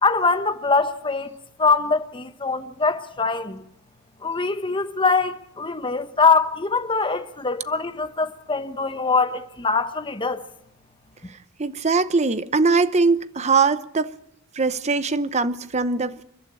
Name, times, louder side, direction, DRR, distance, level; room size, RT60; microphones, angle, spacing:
voice 1, 0.0-1.3 1.6-3.6 4.2-10.4, left 4 dB, 25° left, 1.2 m, -23 dB
voice 2, 11.6-14.1 14.5-16.2, right 4 dB, 30° right, 0.8 m, -21 dB
29.0 x 11.5 x 8.9 m
head